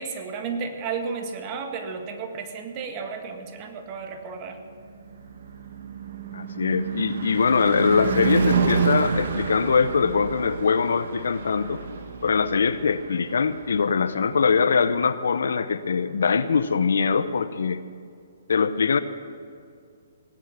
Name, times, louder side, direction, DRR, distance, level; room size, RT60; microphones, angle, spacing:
voice 1, 0.0-4.6, right 5 dB, 30° right, 5 dB, 1.7 m, -33 dB
Car passing by / Truck / Engine, 4.4-14.7, right 5 dB, 65° right, 1.7 m, -29 dB
voice 2, 6.3-11.8 12.2-17.8 18.5-19.0, left 5 dB, 75° left, 13 dB, 0.8 m, -22 dB
18.0 x 9.3 x 7.3 m, 2.3 s
hypercardioid pair, 140°, 0 cm